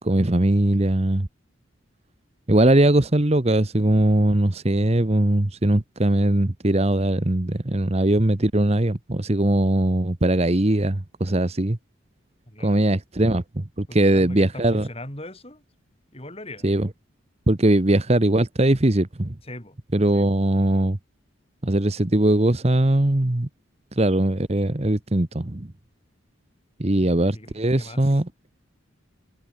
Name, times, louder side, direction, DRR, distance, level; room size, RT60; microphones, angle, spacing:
voice 1, 0.0-1.3 2.5-11.8 12.6-14.9 16.6-16.9 17.5-19.3 19.9-21.0 21.6-23.5 24.0-25.7 26.8-28.3, right 1 dB, 30° right, 1.1 m, -20 dB
voice 2, 12.5-12.8 13.9-15.6 16.1-16.8 19.4-19.8 27.0-28.2, left 1 dB, 30° left, 7.1 m, -40 dB
head